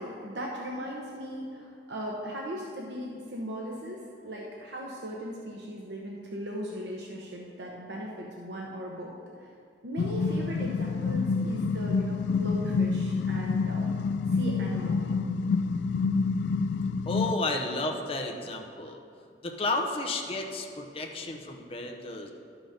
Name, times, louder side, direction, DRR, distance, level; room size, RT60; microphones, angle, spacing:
voice 1, 0.0-9.5 9.8-13.9 14.3-15.1 21.1-21.4, equal, 75° right, -2 dB, 1.0 m, -38 dB
sound 1, 10.0-17.3, left 4 dB, 80° left, 0.3 m, -28 dB
voice 2, 17.1-19.0 19.4-22.3, left 2 dB, 35° left, 2 dB, 0.8 m, -32 dB
11.5 x 6.0 x 5.1 m, 2.3 s
head